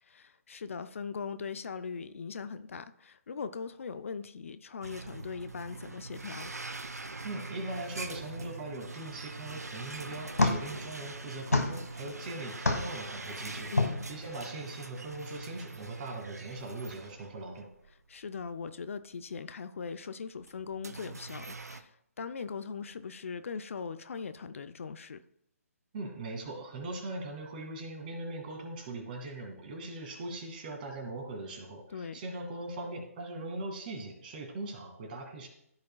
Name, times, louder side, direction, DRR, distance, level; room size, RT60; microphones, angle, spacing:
voice 1, 0.0-6.5 13.7-14.1 18.1-25.2 31.9-32.2, left 5 dB, 60° left, 11 dB, 0.5 m, -40 dB
sound 1, 4.8-17.9 18.3-18.4 19.2-19.3 20.4-21.8, right 3 dB, 90° right, 0.7 m, -43 dB
voice 2, 7.2-17.7 25.9-35.5, right 2 dB, 35° right, 2 dB, 2.3 m, -40 dB
sound 2, 9.5-14.4, left 2 dB, 90° left, 1.4 m, -32 dB
14.5 x 5.1 x 2.3 m, 0.77 s
figure-of-eight pair, 145°, 8 cm